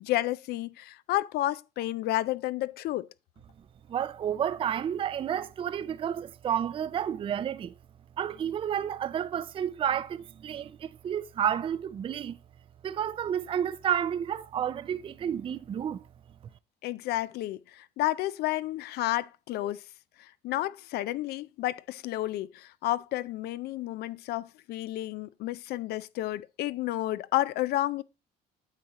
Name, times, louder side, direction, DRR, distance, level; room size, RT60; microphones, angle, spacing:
voice 1, 0.0-3.1 16.8-19.8 20.2-28.0, left 15 dB, 70° left, 0.4 m, -31 dB
voice 2, 3.9-7.7 8.2-12.4 12.8-16.0, right 9 dB, 30° right, 0.4 m, -31 dB
9.0 x 6.5 x 2.9 m
cardioid pair, 110°, 17 cm